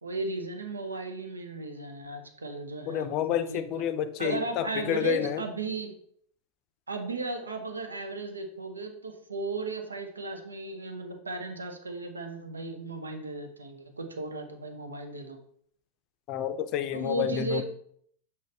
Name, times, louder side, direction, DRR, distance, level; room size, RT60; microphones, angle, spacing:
voice 1, 0.0-3.6 4.2-5.9 6.9-15.4 16.9-17.6, right 2 dB, 75° right, 5 dB, 0.8 m, -35 dB
voice 2, 2.9-5.4 16.3-17.6, left 10 dB, 40° left, 11 dB, 0.5 m, -29 dB
6.4 x 5.4 x 3.3 m, 0.65 s
figure-of-eight pair, 90°, 0 cm